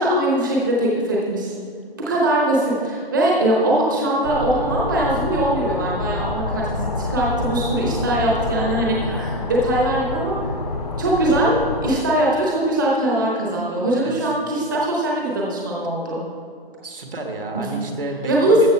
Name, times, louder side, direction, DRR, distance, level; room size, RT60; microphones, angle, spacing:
voice 1, 0.0-1.5 2.0-10.4 11.0-11.5 11.8-16.2 18.3-18.7, right 1 dB, 20° right, -4 dB, 1.0 m, -21 dB
sound 1, 4.2-12.0, left 3 dB, 40° left, 0.8 m, -27 dB
voice 2, 16.8-18.7, right 2 dB, 65° right, 3 dB, 1.9 m, -30 dB
13.5 x 6.4 x 4.5 m, 2.2 s
hypercardioid pair, 170°, 30 cm